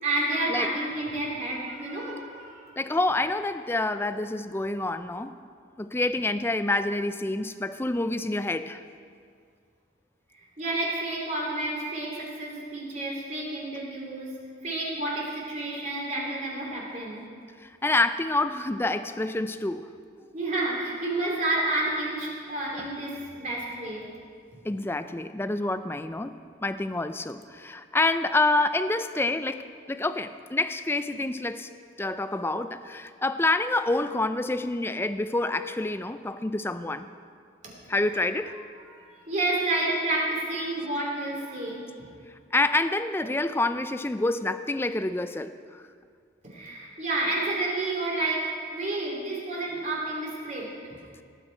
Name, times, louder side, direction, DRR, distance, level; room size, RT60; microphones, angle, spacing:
voice 1, 0.0-2.7 10.6-14.3 14.6-17.2 20.3-24.0 38.2-38.3 38.9-42.1 46.4-50.7, right 2 dB, 40° right, -3 dB, 2.9 m, -30 dB
voice 2, 2.8-5.3 5.8-8.8 17.6-19.9 24.6-26.3 26.6-31.7 32.0-37.1 37.9-38.6 42.5-45.8, left 2 dB, 10° left, 11 dB, 0.4 m, -27 dB
18.0 x 9.1 x 4.5 m, 2.2 s
head